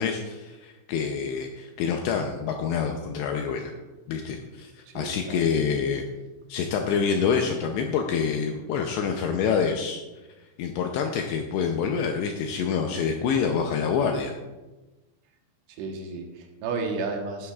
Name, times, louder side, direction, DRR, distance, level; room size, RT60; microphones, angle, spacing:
voice 1, 0.0-3.7 4.1-6.0 6.5-10.0 10.6-14.3, left 6 dB, 85° left, 3 dB, 2.4 m, -27 dB
voice 2, 4.9-5.4 15.7-17.5, right 4 dB, 75° right, 2 dB, 3.5 m, -32 dB
16.5 x 9.6 x 2.4 m, 1.1 s
omnidirectional pair, 5.7 m